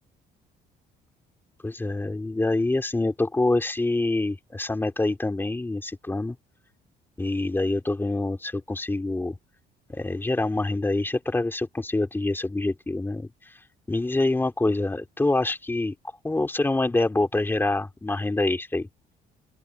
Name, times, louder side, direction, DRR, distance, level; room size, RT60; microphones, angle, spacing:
voice 1, 1.6-6.3 7.2-9.4 9.9-13.3 13.9-15.9 16.2-18.9, left 2 dB, 10° left, 3.2 m, -26 dB
open air
cardioid pair, 110°, 17 cm